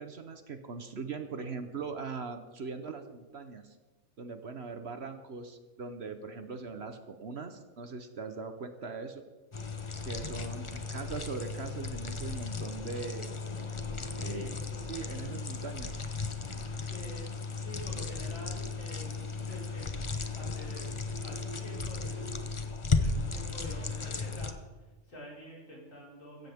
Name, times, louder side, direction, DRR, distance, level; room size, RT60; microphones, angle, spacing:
voice 1, 0.0-3.8 4.2-9.2 10.0-13.3 14.1-14.6 14.8-16.0, right 4 dB, 55° right, 8 dB, 1.2 m, -40 dB
sound 1, 9.5-24.5, left 4 dB, 25° left, 0.8 m, -35 dB
voice 2, 14.0-14.5 16.9-17.3 17.6-19.2 19.5-19.9 20.3-20.9 21.2-22.3 23.0-26.5, equal, 70° left, -5 dB, 5.5 m, -47 dB
16.0 x 15.5 x 3.6 m, 1.2 s
omnidirectional pair, 1.4 m